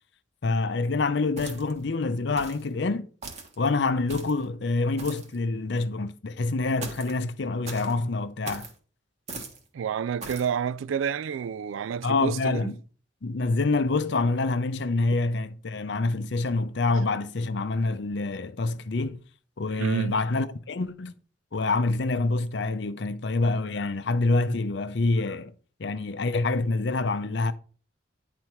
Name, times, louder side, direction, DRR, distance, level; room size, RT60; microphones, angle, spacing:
voice 1, 0.4-3.1 3.6-8.7 12.0-12.8 13.2-19.2 19.6-21.1 21.5-25.5 25.8-27.5, left 3 dB, 60° left, 0.6 m, -26 dB
sound 1, 1.4-1.8 2.4-2.7 3.2-3.5 4.1-4.4 5.0-5.3 6.8-7.2 7.6-7.9 8.4-8.7 9.3-9.6 10.2-10.5, right 3 dB, 35° right, 1.3 m, -39 dB
voice 2, 9.7-12.8 19.8-20.2, right 7 dB, 85° right, 0.3 m, -29 dB
9.6 x 4.2 x 4.5 m
head